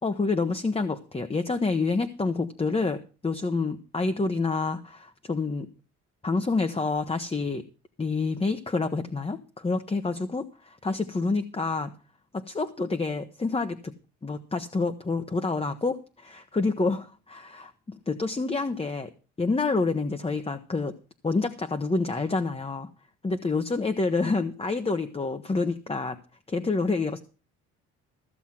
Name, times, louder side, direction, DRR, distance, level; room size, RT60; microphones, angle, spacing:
voice 1, 0.0-5.7 6.2-7.6 8.0-11.9 12.3-13.9 14.2-19.1 19.4-20.9 21.2-22.9 23.2-26.2 26.5-27.2, left 3 dB, 20° left, 8 dB, 1.1 m, -28 dB
15.0 x 7.1 x 5.9 m, 0.36 s
cardioid pair, 90°, 30 cm